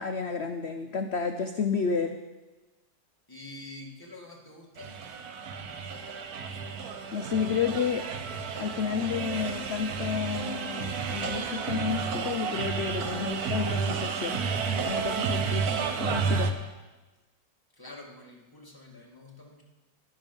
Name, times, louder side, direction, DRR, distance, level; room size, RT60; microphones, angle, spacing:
voice 1, 0.0-2.2 7.1-8.0 8.6-14.4 14.8-15.7 16.0-16.5, left 6 dB, 80° left, 7 dB, 0.5 m, -31 dB
voice 2, 3.3-5.0 17.7-19.6, left 2 dB, 15° left, -1 dB, 1.6 m, -46 dB
sound 1, 4.8-16.5, right 5 dB, 60° right, 1.3 m, -31 dB
12.0 x 10.5 x 5.3 m, 1.2 s
omnidirectional pair, 1.9 m